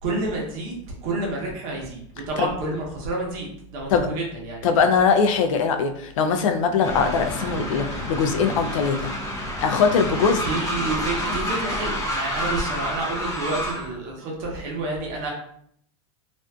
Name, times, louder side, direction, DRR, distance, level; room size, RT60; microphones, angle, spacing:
voice 1, 0.0-0.7 1.0-4.7 10.4-15.3, right 2 dB, 50° right, -1 dB, 0.9 m, -29 dB
voice 2, 4.6-9.1 9.6-10.4, left 5 dB, 75° left, 6 dB, 0.4 m, -21 dB
Train, 6.8-13.9, equal, 20° left, 0.7 m, -29 dB
2.5 x 2.5 x 2.2 m, 0.68 s
supercardioid pair, 140°, 17 cm